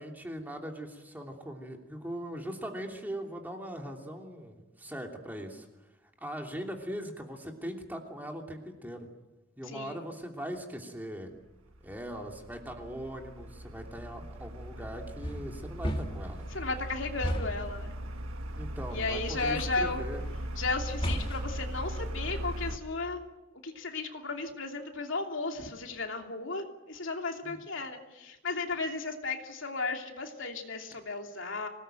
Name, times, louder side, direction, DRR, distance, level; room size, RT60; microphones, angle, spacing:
voice 1, 0.0-5.7 6.2-9.1 9.6-11.3 11.8-16.5 18.6-20.2 27.4-27.5, equal, 10° right, 2 dB, 2.9 m, -40 dB
voice 2, 9.7-10.0 16.5-17.9 18.9-20.0 20.6-23.2 23.6-31.7, left 3 dB, 65° left, 3 dB, 3.0 m, -34 dB
sound 1, 11.7-22.8, right 1 dB, 85° right, 1.7 m, -39 dB
sound 2, 15.2-16.4 17.2-17.8 19.4-19.9 21.0-21.6, equal, 25° left, 2.1 m, -34 dB
26.0 x 19.0 x 9.2 m, 1.0 s
head